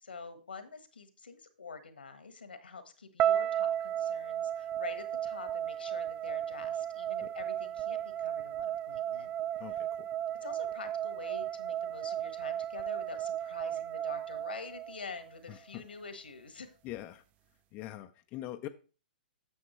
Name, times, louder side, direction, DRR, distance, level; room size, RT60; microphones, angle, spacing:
voice 1, 0.0-9.3 10.4-16.7, left 4 dB, 85° left, 10 dB, 1.4 m, -46 dB
sound 1, 3.2-15.3, right 10 dB, 25° right, 0.3 m, -34 dB
voice 2, 9.6-10.1 15.5-15.9 16.8-17.2 17.7-18.7, left 14 dB, 30° left, 7 dB, 0.5 m, -43 dB
9.5 x 7.2 x 3.1 m, 0.35 s
hypercardioid pair, 125°, 5 cm